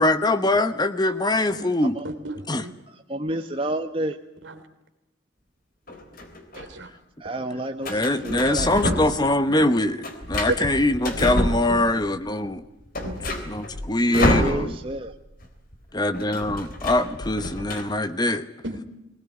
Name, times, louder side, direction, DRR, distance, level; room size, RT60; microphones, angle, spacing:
voice 1, 0.0-2.0 2.5-2.6 7.9-12.6 13.5-14.7 15.9-18.4, left 2 dB, 20° left, 11 dB, 1.1 m, -23 dB
voice 2, 2.0-2.7 4.4-4.6 6.5-6.9 8.2-8.3 9.7-9.8 10.5-10.6 11.7-11.8 13.0-13.2 18.6-18.8, right 1 dB, 75° right, 8 dB, 3.1 m, -32 dB
voice 3, 3.1-4.2 7.2-9.0 14.1-15.1, right 1 dB, 30° right, 6 dB, 0.9 m, -29 dB
sound 1, 5.9-6.7 7.8-9.3 9.6-12.1 12.5-12.6 12.8-15.0 15.3-15.5 15.7-17.8, left 1 dB, 45° left, 3.4 m, -28 dB
22.0 x 19.5 x 9.7 m, 0.96 s
head